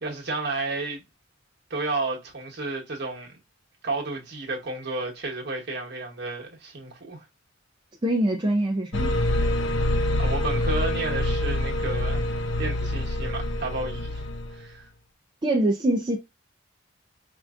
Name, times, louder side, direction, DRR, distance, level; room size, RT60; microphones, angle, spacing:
voice 1, 0.0-1.0 1.7-3.4 3.8-7.2 9.5-9.7 10.2-14.3 14.5-14.9, right 3 dB, 55° right, 1.1 m, -32 dB
voice 2, 8.0-9.1 15.4-16.2, right 1 dB, 25° right, 0.5 m, -23 dB
sound 1, 8.9-14.6, left 1 dB, 65° left, 0.5 m, -26 dB
4.6 x 2.5 x 2.3 m
head